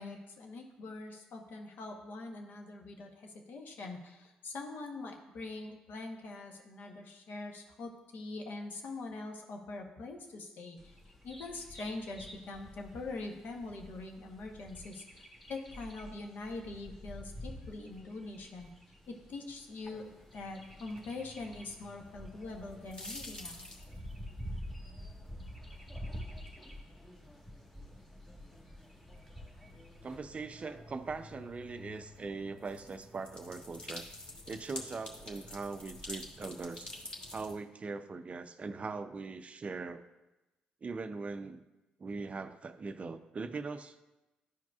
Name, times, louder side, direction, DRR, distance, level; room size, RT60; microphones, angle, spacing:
voice 1, 0.0-11.0 11.2-18.7 19.1-20.0 20.3-23.7, left 3 dB, 65° left, 3 dB, 1.0 m, -43 dB
Bird vocalization bird call bird song, 10.8-30.2, equal, 5° left, 1.3 m, -49 dB
sound 1, 19.8-37.5, left 2 dB, 25° left, 1.4 m, -50 dB
voice 2, 30.0-34.0 34.5-36.9 37.3-40.0 40.8-41.6 42.0-44.0, right 4 dB, 40° right, 10 dB, 0.4 m, -41 dB
11.0 x 4.7 x 2.3 m, 1.0 s
hypercardioid pair, 50°, 3 cm